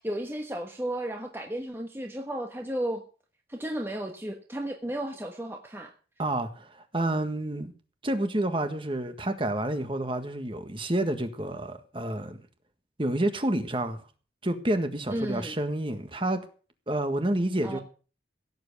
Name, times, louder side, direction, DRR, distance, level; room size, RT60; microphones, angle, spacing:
voice 1, 0.0-3.0 3.5-5.9 15.1-15.5 17.6-17.8, right 1 dB, 10° right, 1.2 m, -33 dB
voice 2, 6.2-7.7 8.0-12.4 13.0-14.0 14.4-16.4 16.9-17.8, right 1 dB, 30° right, 1.6 m, -29 dB
16.5 x 8.0 x 6.8 m
head